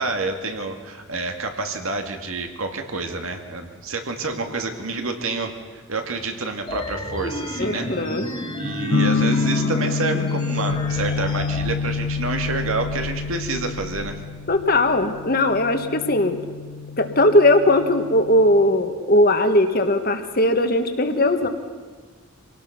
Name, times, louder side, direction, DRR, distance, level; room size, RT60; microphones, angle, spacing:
voice 1, 0.0-5.5 5.9-7.9 8.5-14.2, right 3 dB, 75° right, 5 dB, 2.1 m, -28 dB
sound 1, 6.7-11.7, left 1 dB, 25° left, 2.1 m, -32 dB
voice 2, 7.6-8.2 14.5-16.4 17.0-21.5, left 1 dB, 45° left, 7 dB, 1.4 m, -19 dB
sound 2, 8.9-18.7, left 4 dB, 65° left, 1.1 m, -27 dB
sound 3, 10.7-15.6, equal, 40° right, 1.5 m, -40 dB
25.0 x 18.0 x 5.9 m, 1.5 s
head